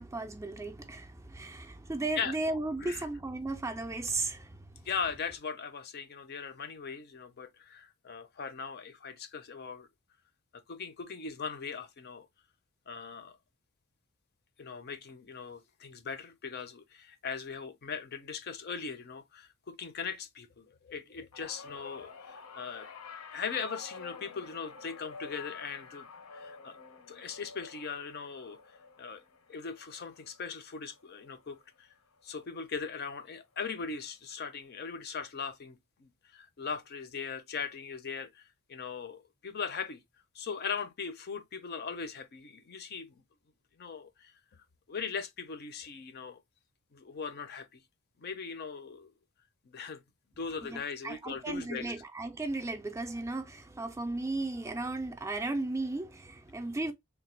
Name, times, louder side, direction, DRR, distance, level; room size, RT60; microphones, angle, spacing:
voice 1, 0.0-4.6 50.6-50.8 51.0-56.9, right 2 dB, 15° right, 0.3 m, -35 dB
voice 2, 4.8-9.9 10.7-12.3 12.9-13.4 14.6-22.9 23.3-26.8 27.1-28.6 29.0-29.2 29.5-31.9 32.2-40.0 40.3-43.2 43.8-44.3 44.9-46.4 46.9-47.8 48.2-49.1 49.7-50.0 50.4-51.9, left 6 dB, 45° left, 0.5 m, -39 dB
sound 1, 21.3-31.8 32.1-32.5 33.6-33.7, left 4 dB, 80° left, 0.7 m, -49 dB
3.3 x 2.1 x 4.2 m
head